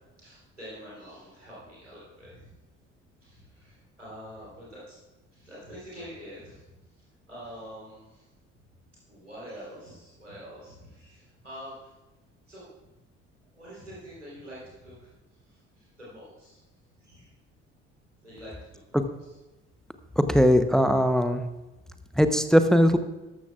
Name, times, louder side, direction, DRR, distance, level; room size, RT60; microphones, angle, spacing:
voice 1, 0.2-2.5 3.2-5.0 5.3-6.6 7.3-8.3 9.1-11.9 12.5-12.7 13.5-15.1 15.5-16.6 17.0-17.3 18.2-18.6 18.9-19.1, equal, 90° right, -7 dB, 3.9 m, -45 dB
voice 2, 20.2-21.4 22.2-23.0, equal, ahead, 9 dB, 0.9 m, -20 dB
13.5 x 12.5 x 2.5 m, 1.1 s
figure-of-eight pair, 50°, 36 cm